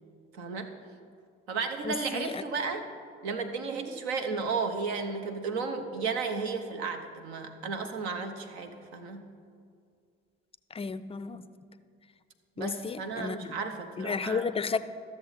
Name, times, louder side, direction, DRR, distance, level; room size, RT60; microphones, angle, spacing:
voice 1, 0.3-0.7 1.5-2.8 3.2-9.3 12.6-14.5, right 4 dB, 75° right, 6 dB, 0.8 m, -33 dB
voice 2, 1.8-2.4 10.7-11.4 12.6-13.5 14.0-14.8, left 5 dB, 20° left, 14 dB, 0.4 m, -33 dB
13.0 x 7.1 x 4.1 m, 2.3 s
figure-of-eight pair, 45°, 33 cm